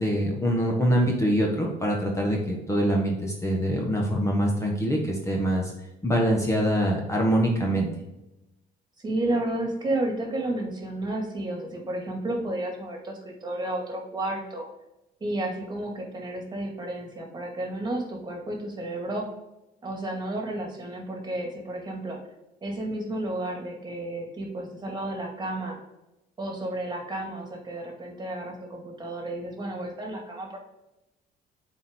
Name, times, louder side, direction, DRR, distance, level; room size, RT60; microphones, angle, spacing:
voice 1, 0.0-5.7 6.0-7.9, equal, 15° left, -1 dB, 1.4 m, -24 dB
voice 2, 9.0-14.7 15.2-19.3 19.8-22.2 22.6-25.8 26.4-30.6, right 1 dB, 25° right, 1 dB, 2.2 m, -32 dB
7.0 x 4.5 x 3.7 m, 0.93 s
cardioid pair, 110°, 17 cm